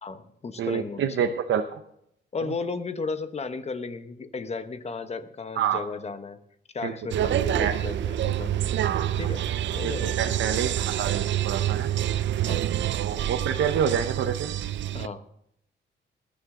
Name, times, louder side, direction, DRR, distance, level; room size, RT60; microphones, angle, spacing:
voice 1, 0.0-1.3 2.3-6.4 6.7-8.7 9.2-9.5 9.7-10.2 12.5-12.7 14.9-15.2, left 4 dB, 35° left, 10 dB, 1.1 m, -34 dB
voice 2, 0.6-1.8 2.5-2.6 5.6-5.8 6.8-7.8 8.8-9.2 9.8-11.9 12.9-14.5, right 8 dB, 90° right, 7 dB, 0.9 m, -28 dB
sound 1, 7.1-15.1, right 11 dB, 70° right, 0.5 m, -27 dB
21.0 x 9.8 x 3.8 m, 0.73 s
wide cardioid pair, 140°, 20 cm